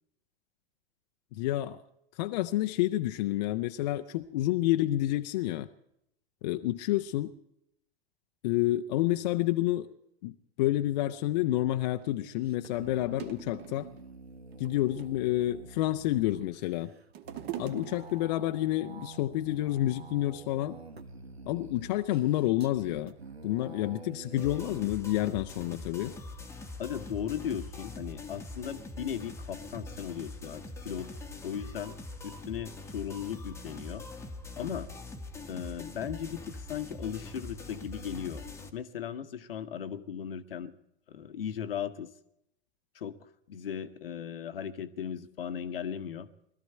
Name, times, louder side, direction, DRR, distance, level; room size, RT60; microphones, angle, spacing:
voice 1, 1.3-1.8 2.2-5.7 6.4-7.3 8.4-9.9 10.2-13.9 14.6-16.9 17.6-20.8 21.4-23.1 23.4-26.1, left 15 dB, 45° left, 8 dB, 0.6 m, -29 dB
sound 1, 11.6-24.9, right 3 dB, 85° right, 1.0 m, -48 dB
sound 2, 12.0-12.1 12.8-12.9 13.2-14.0 14.5-15.3 16.0-16.6 16.8-18.5 19.2-19.3, right 12 dB, 35° right, 1.2 m, -42 dB
sound 3, 24.4-38.7, left 2 dB, 10° left, 1.0 m, -43 dB
voice 2, 26.8-31.1 31.4-32.0 32.2-34.1 34.6-34.9 35.5-38.4 38.7-40.7 41.1-42.1 42.9-43.2 43.5-46.3, left 8 dB, 65° left, 11 dB, 1.0 m, -37 dB
20.0 x 13.0 x 4.4 m, 0.77 s
figure-of-eight pair, 90°, 30 cm